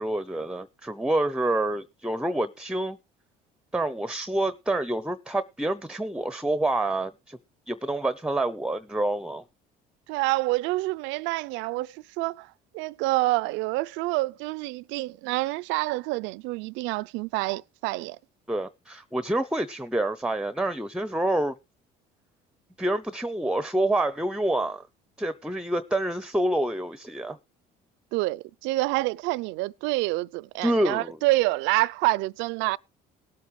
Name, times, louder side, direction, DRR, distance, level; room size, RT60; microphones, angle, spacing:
voice 1, 0.0-3.0 3.7-7.4 7.7-9.4 18.5-21.5 22.8-24.9 25.2-27.4 30.6-31.2, right 1 dB, 5° right, 0.7 m, -27 dB
voice 2, 10.1-18.2 28.1-32.8, right 20 dB, 80° right, 0.5 m, -27 dB
18.5 x 8.3 x 3.2 m
supercardioid pair, 80°, 19 cm